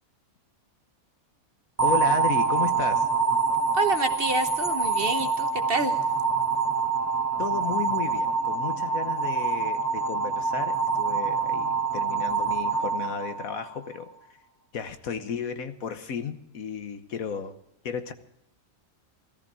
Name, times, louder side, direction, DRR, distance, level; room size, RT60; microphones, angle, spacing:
voice 1, 1.8-3.1 7.4-14.1 14.7-17.5 17.8-18.1, left 7 dB, 70° left, 9 dB, 1.5 m, -33 dB
sound 1, 1.8-14.0, right 5 dB, 10° right, 1.0 m, -26 dB
voice 2, 3.7-6.0, right 2 dB, 45° right, 8 dB, 1.1 m, -28 dB
17.5 x 14.0 x 4.8 m, 0.78 s
omnidirectional pair, 1.6 m